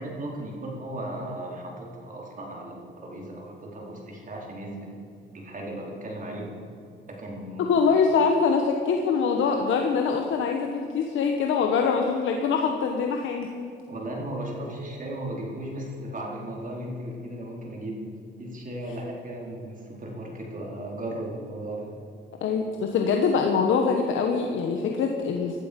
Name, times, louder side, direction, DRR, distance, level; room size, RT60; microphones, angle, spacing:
voice 1, 0.0-4.9 5.3-6.5 7.2-7.7 13.9-18.0 18.4-21.9, right 1 dB, 40° right, -2 dB, 4.3 m, -36 dB
voice 2, 7.6-13.5 22.4-25.6, left 5 dB, 80° left, 3 dB, 1.3 m, -24 dB
17.5 x 12.0 x 5.3 m, 2.5 s
cardioid pair, 90°, 20 cm